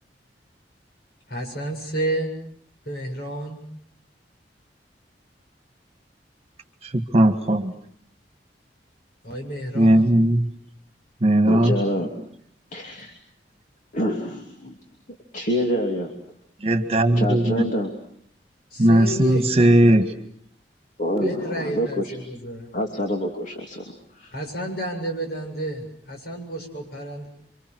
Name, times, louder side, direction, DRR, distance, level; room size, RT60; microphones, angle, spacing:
voice 1, 1.3-2.3 2.9-3.6 9.2-10.1 18.7-19.5 21.2-22.7 24.3-27.3, right 1 dB, 60° left, 2 dB, 7.6 m, -31 dB
voice 2, 6.8-7.7 9.7-10.5 11.2-11.8 16.6-17.7 18.8-20.1 21.1-21.3, right 1 dB, 35° right, 9 dB, 1.8 m, -18 dB
voice 3, 11.5-12.1 12.7-13.1 13.9-14.7 15.3-16.1 17.2-17.9 21.0-22.2 22.7-23.8 24.2-24.3, equal, 45° left, 2 dB, 2.9 m, -26 dB
29.5 x 25.5 x 6.3 m, 0.67 s
head